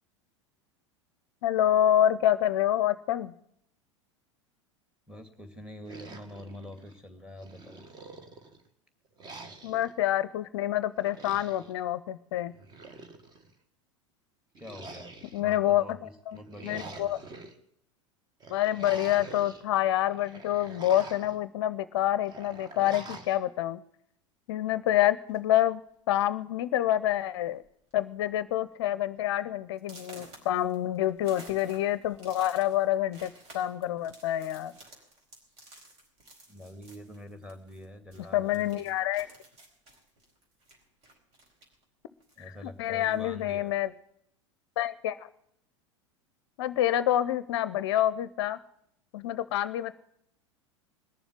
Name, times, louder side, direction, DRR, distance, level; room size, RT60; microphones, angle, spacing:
voice 1, 1.4-3.3 9.6-12.5 15.3-16.0 16.3-16.4 16.6-17.2 18.5-23.8 24.5-25.8 26.1-27.6 27.9-34.7 38.3-39.3 42.8-43.9 44.8-45.3 46.6-48.6 49.1-49.9, left 12 dB, 55° left, 15 dB, 0.6 m, -27 dB
voice 2, 5.1-7.8 14.6-15.1 15.4-16.0 16.3-17.0 36.5-38.9 42.4-43.7, left 1 dB, 5° right, 7 dB, 2.5 m, -45 dB
sound 1, 5.9-7.0 7.4-8.6 9.2-9.9 11.0-11.7 12.5-13.5 14.6-15.6 16.3-17.5 18.4-19.6 20.0-21.4 22.3-23.4, right 3 dB, 25° right, 1.8 m, -46 dB
sound 2, 25.3-25.6 26.4-26.5 26.9-27.2 27.5-27.9 28.3-28.4 28.9-29.0 29.8-37.8 38.1-41.8 42.2-43.2, right 2 dB, 45° right, 4.6 m, -53 dB
20.5 x 7.1 x 9.6 m, 0.74 s
figure-of-eight pair, 85°, 16 cm